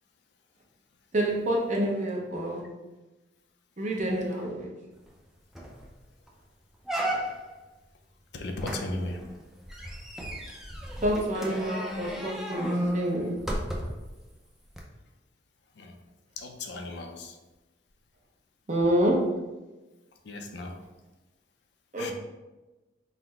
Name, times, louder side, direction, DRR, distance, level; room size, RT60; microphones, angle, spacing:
voice 1, 1.1-2.7 3.8-4.7 11.0-13.5 18.7-19.4 21.9-22.1, right 1 dB, 40° right, -1 dB, 0.7 m, -27 dB
sound 1, 5.1-5.2 5.6-5.9 6.3-6.4 6.9-7.6 8.6-14.1 14.7-14.8, right 1 dB, ahead, 0.4 m, -33 dB
voice 2, 8.3-9.2 15.8-16.0 16.4-17.4 20.2-20.8 22.0-22.1, left 2 dB, 65° left, 4 dB, 0.5 m, -36 dB
3.8 x 2.1 x 4.4 m, 1.1 s
head